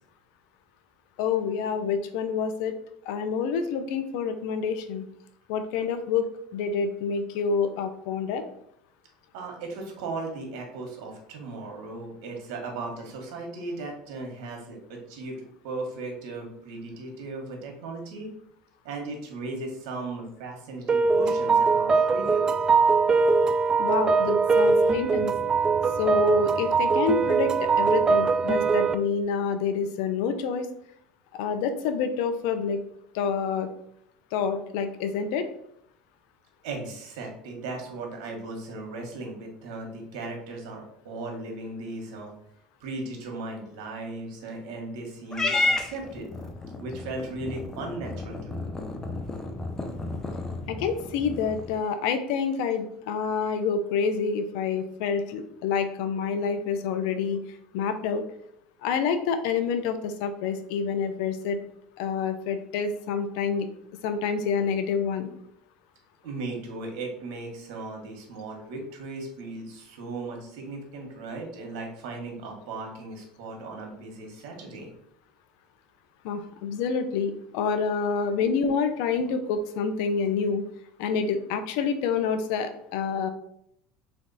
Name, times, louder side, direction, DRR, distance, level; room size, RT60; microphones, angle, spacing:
voice 1, 1.2-2.7 3.1-5.0 5.5-6.3 6.5-8.4 23.8-25.3 26.0-30.7 31.4-32.8 33.1-33.7 34.3-35.5 45.4-45.8 50.7-57.4 57.7-58.2 58.8-61.6 62.0-63.7 64.0-65.3 76.2-80.6 81.0-83.3, left 6 dB, 75° left, 9 dB, 0.6 m, -27 dB
voice 2, 9.3-15.3 15.6-18.3 18.8-22.6 36.6-42.3 42.8-46.3 46.8-48.7 66.2-74.9 78.4-78.5 79.2-79.4, right 3 dB, 75° right, 1 dB, 1.4 m, -37 dB
sound 1, 20.9-29.0, right 4 dB, 25° right, 0.4 m, -22 dB
Purr / Meow, 45.3-51.8, left 2 dB, 15° left, 0.6 m, -32 dB
3.5 x 3.4 x 4.0 m, 0.73 s
supercardioid pair, 110°, 3 cm